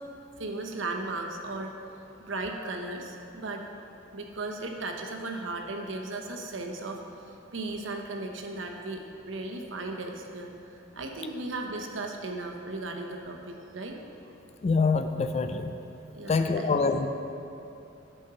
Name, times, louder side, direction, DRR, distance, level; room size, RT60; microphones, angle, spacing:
voice 1, 0.4-1.7 2.2-3.6 4.1-7.0 7.5-10.5 10.9-14.0 16.1-16.7, right 2 dB, 80° right, 2 dB, 0.9 m, -36 dB
voice 2, 14.6-15.7 16.3-17.1, left 4 dB, 35° left, 8 dB, 0.3 m, -25 dB
8.5 x 5.4 x 6.8 m, 2.8 s
head